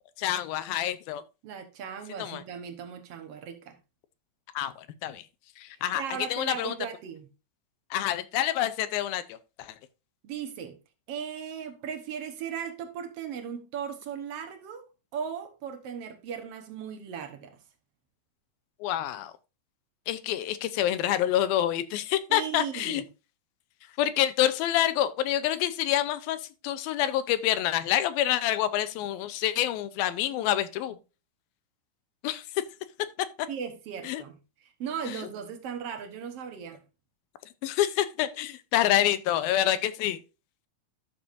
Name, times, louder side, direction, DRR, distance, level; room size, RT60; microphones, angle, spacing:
voice 1, 0.2-1.2 2.2-2.4 4.5-5.3 5.6-6.8 7.9-9.8 18.8-19.3 20.1-23.0 24.0-31.0 32.2-32.6 33.4-33.5 34.0-34.2 35.1-35.3 37.6-40.2, left 12 dB, 85° left, 2.6 m, -27 dB
voice 2, 1.4-3.7 5.9-7.3 10.2-10.8 11.1-14.9 15.1-17.5 22.3-23.0 33.5-34.4 34.8-36.8, right 7 dB, 65° right, 1.5 m, -37 dB
12.0 x 7.0 x 2.6 m
omnidirectional pair, 4.2 m